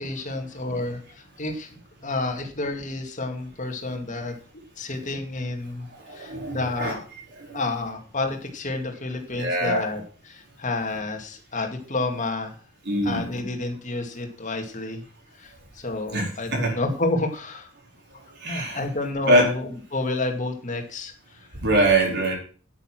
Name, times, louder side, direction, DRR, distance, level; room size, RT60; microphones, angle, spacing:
voice 1, 0.0-4.3 4.8-7.0 7.5-12.6 13.0-15.0 15.4-17.7 18.4-21.5, left 2 dB, 35° left, 4 dB, 2.3 m, -30 dB
voice 2, 6.0-6.9 7.4-7.6 9.4-9.8 12.8-13.2 16.1-16.7 18.4-18.8 19.3-19.5 21.6-22.3, right 1 dB, 50° right, 0 dB, 4.4 m, -23 dB
9.8 x 9.2 x 6.1 m, 0.40 s
head